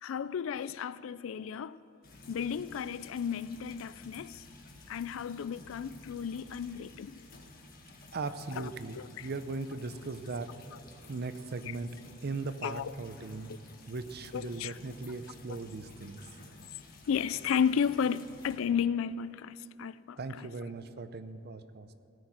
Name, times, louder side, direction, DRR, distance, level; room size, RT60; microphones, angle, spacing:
voice 1, 0.0-1.8 2.3-4.4 4.9-7.2 8.6-9.3 12.6-12.9 14.3-14.7 15.5-15.6 17.1-20.5, left 7 dB, 75° left, 0.3 m, -33 dB
sound 1, 2.0-18.6, left 2 dB, 45° left, 1.6 m, -53 dB
voice 2, 8.1-10.5 11.1-11.9 12.2-13.5 13.9-16.2 20.2-21.9, right 3 dB, 50° right, 0.6 m, -38 dB
17.5 x 6.5 x 8.6 m
head